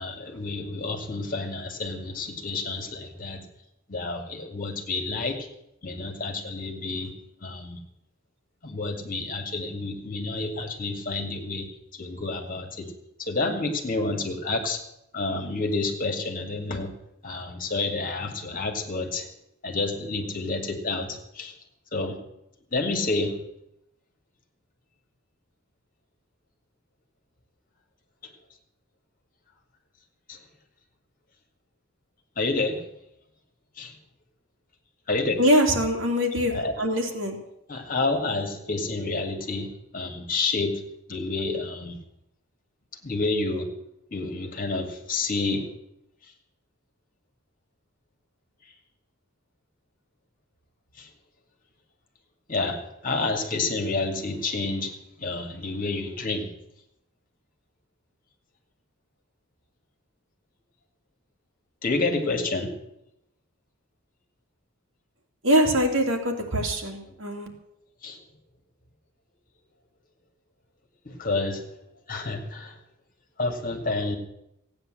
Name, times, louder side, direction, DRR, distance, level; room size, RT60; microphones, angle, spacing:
voice 1, 0.0-3.5 3.9-5.5 5.8-7.1 7.4-7.8 8.6-12.9 13.2-14.8 15.1-17.0 17.2-19.3 19.6-21.5 21.9-22.2 22.7-23.4 28.2-28.3 30.3-30.4 32.4-32.9 33.8-34.0 35.1-35.4 36.5-36.7 37.7-40.8 41.1-42.0 43.0-43.7 44.1-45.7 46.2-46.3 50.9-51.1 52.5-56.5 61.8-62.7 68.0-68.2 71.0-71.8 72.1-72.8 73.4-74.2, left 3 dB, 45° left, 4 dB, 2.2 m, -29 dB
voice 2, 35.4-37.4 65.4-67.5, equal, 70° right, 1 dB, 2.8 m, -23 dB
15.5 x 9.4 x 7.8 m, 0.81 s
head